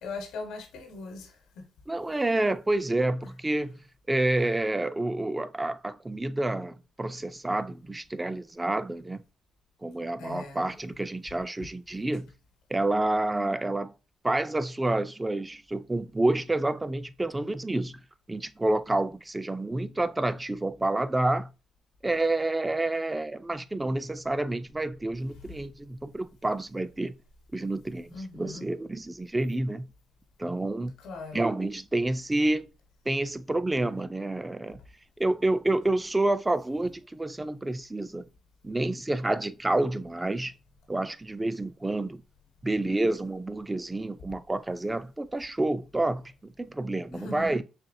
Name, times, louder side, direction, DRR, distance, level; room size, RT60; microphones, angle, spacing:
voice 1, 0.0-1.7 3.2-3.3 10.2-10.7 28.1-28.7 31.0-31.4 47.1-47.6, left 3 dB, 80° left, 1.0 m, -40 dB
voice 2, 1.9-3.8 4.1-9.2 9.8-12.3 12.7-13.9 14.2-18.0 18.3-21.5 22.0-27.2 27.5-29.9 30.4-30.9 31.3-32.7 33.1-34.8 35.2-38.2 38.6-40.5 40.9-42.2 42.6-47.6, right 2 dB, 15° right, 0.3 m, -29 dB
4.2 x 3.1 x 2.6 m
cardioid pair, 90°, 0 cm